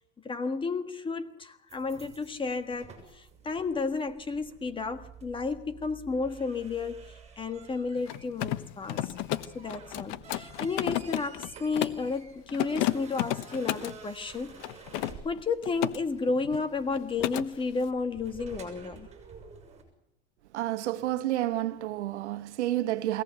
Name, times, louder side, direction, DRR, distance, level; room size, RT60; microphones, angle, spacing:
voice 1, 0.2-7.0 7.4-9.1 9.5-14.6 15.2-19.1, left 4 dB, 15° left, 1.6 m, -32 dB
sound 1, 1.7-19.8, right 5 dB, 20° right, 6.6 m, -51 dB
Mechanisms, 8.0-12.1 12.5-14.0 14.6-16.0 16.3-16.6 16.9-17.5, left 15 dB, 50° left, 1.2 m, -32 dB
voice 2, 20.5-23.2, right 14 dB, 85° right, 1.5 m, -30 dB
22.5 x 18.0 x 8.2 m
supercardioid pair, 135°, 34 cm